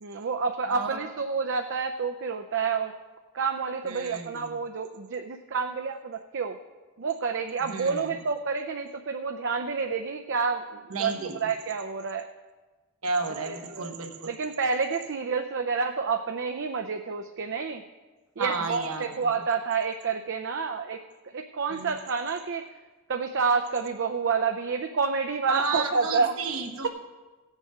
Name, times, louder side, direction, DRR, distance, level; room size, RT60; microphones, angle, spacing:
voice 1, 0.0-2.9 3.3-6.6 7.0-12.3 13.5-13.9 14.3-17.8 18.4-21.0 21.3-22.6 23.1-26.3, right 5 dB, 55° right, 5 dB, 0.5 m, -29 dB
voice 2, 0.7-1.0 3.8-4.6 7.6-8.2 10.9-11.5 13.0-14.3 18.4-19.4 21.7-21.9 25.5-26.9, right 4 dB, 75° right, 5 dB, 1.2 m, -32 dB
16.0 x 8.1 x 5.0 m, 1.3 s
head